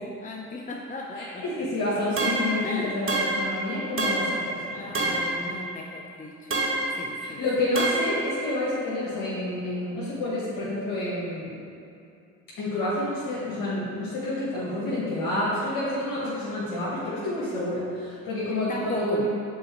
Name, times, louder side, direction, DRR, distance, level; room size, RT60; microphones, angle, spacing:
voice 1, 0.0-1.7 2.6-3.0 4.7-6.6 7.0-7.4 18.5-19.2, left 2 dB, 20° left, -1 dB, 0.6 m, -37 dB
voice 2, 1.2-5.5 7.2-11.6 12.6-19.3, left 1 dB, 65° left, -8 dB, 1.5 m, -29 dB
sound 1, 2.2-2.6 3.1-3.5 4.0-4.4 4.9-5.4 6.5-7.0 7.8-8.2, right 2 dB, 35° right, 1.1 m, -26 dB
5.5 x 4.1 x 4.4 m, 2.6 s
hypercardioid pair, 55°, 36 cm